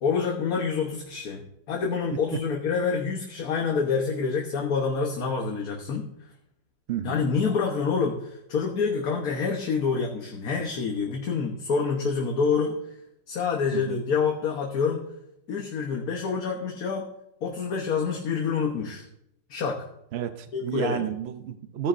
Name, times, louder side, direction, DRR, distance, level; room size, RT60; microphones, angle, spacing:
voice 1, 0.0-1.4 1.7-6.1 7.0-12.9 13.3-15.1 15.5-17.1 17.4-19.0 19.5-19.8 20.5-21.1, left 5 dB, 55° left, 0 dB, 1.4 m, -27 dB
voice 2, 20.1-21.9, right 8 dB, 90° right, 10 dB, 0.5 m, -31 dB
15.0 x 9.5 x 2.6 m, 0.81 s
omnidirectional pair, 2.0 m